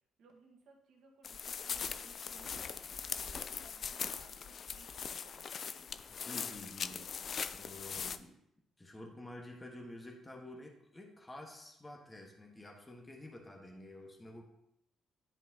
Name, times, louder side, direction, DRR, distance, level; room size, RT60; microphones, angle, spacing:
voice 1, 0.2-6.0, right 3 dB, 75° right, 1 dB, 1.5 m, -62 dB
sound 1, 1.2-8.2, left 6 dB, 55° left, 0.4 m, -41 dB
voice 2, 6.1-7.1 7.5-8.4 8.8-14.4, left 1 dB, 20° left, 1 dB, 1.4 m, -50 dB
10.5 x 5.3 x 2.8 m, 0.80 s
supercardioid pair, 70°, 0 cm